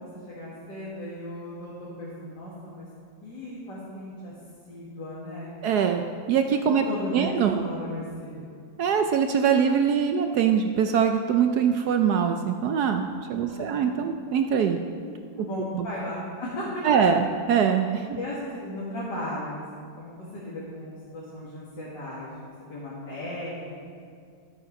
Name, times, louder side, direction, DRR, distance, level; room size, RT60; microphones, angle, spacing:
voice 1, 0.0-2.9 3.2-4.3 4.7-5.6 6.8-8.7 13.4-14.2 15.3-16.8 18.1-22.3 22.7-23.7, left 1 dB, 65° left, -8 dB, 2.6 m, -36 dB
voice 2, 5.6-6.8 7.1-7.6 8.8-14.8 16.8-18.2, right 7 dB, 70° right, 6 dB, 1.0 m, -23 dB
13.0 x 7.9 x 5.2 m, 2.3 s
omnidirectional pair, 2.0 m